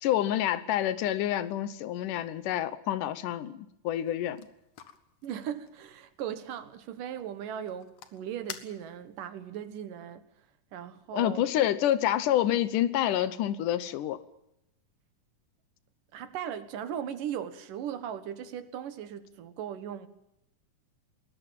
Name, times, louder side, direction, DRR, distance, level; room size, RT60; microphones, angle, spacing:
voice 1, 0.0-4.4 11.1-14.2, left 12 dB, 80° left, 2.6 m, -28 dB
sound 1, 4.0-9.2, left 8 dB, 65° left, 2.7 m, -50 dB
voice 2, 5.2-10.3 10.7-11.5 16.1-20.1, right 9 dB, 90° right, 3.1 m, -38 dB
20.5 x 20.5 x 7.4 m
omnidirectional pair, 3.7 m